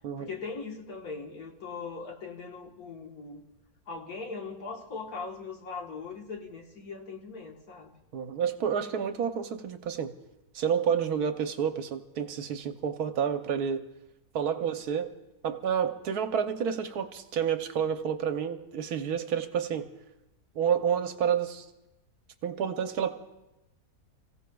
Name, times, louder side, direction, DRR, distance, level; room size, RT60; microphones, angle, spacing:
voice 1, 0.2-3.4 3.9-7.9 14.5-14.7, left 4 dB, 65° left, 2 dB, 1.9 m, -40 dB
voice 2, 8.1-10.1 10.5-13.9 14.3-15.1 15.4-19.9 20.5-21.7 22.4-23.1, right 7 dB, 75° right, 8 dB, 1.3 m, -29 dB
29.5 x 16.0 x 2.3 m, 0.95 s
omnidirectional pair, 1.7 m